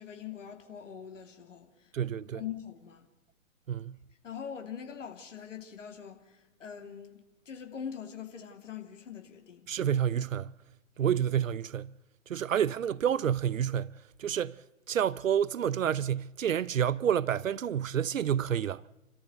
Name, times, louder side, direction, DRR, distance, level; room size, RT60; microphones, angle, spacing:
voice 1, 0.0-3.1 4.2-9.7, left 8 dB, 65° left, 3.0 m, -43 dB
voice 2, 1.9-2.4 3.7-4.0 9.7-10.5 11.0-11.9 12.3-13.9 14.2-14.6 14.9-18.8, right 9 dB, 70° right, 0.7 m, -29 dB
29.0 x 14.0 x 8.0 m
figure-of-eight pair, 120°, 40 cm